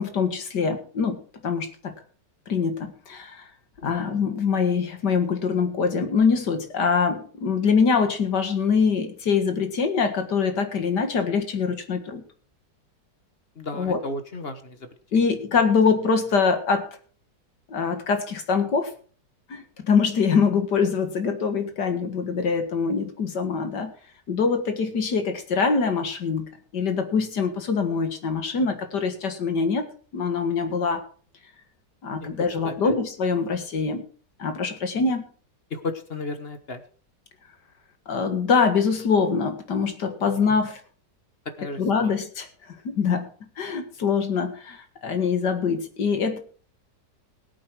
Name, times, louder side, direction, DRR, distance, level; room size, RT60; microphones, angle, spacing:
voice 1, 0.0-1.9 2.5-3.4 3.8-12.2 13.7-14.0 15.1-16.9 17.7-18.9 19.5-23.9 24.3-31.0 32.0-34.0 34.4-35.3 38.1-40.8 41.8-43.3 43.6-46.4, left 5 dB, 70° left, 8 dB, 2.4 m, -24 dB
voice 2, 13.5-15.2 32.2-32.3 32.6-32.9 35.7-36.8 40.2-40.6 41.6-42.1, left 2 dB, 35° left, 9 dB, 1.4 m, -35 dB
18.0 x 8.4 x 4.7 m, 0.41 s
omnidirectional pair, 1.9 m